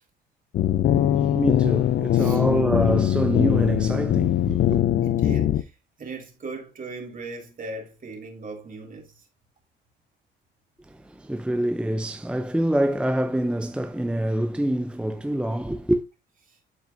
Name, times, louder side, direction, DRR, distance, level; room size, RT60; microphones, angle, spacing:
sound 1, 0.5-5.6, left 11 dB, 60° left, 0.5 m, -21 dB
voice 1, 1.2-4.8 10.8-16.0, right 1 dB, 5° right, 0.6 m, -26 dB
voice 2, 5.0-9.3 16.5-16.6, right 3 dB, 45° right, 2.8 m, -38 dB
12.0 x 4.6 x 2.7 m
cardioid pair, 90°, 20 cm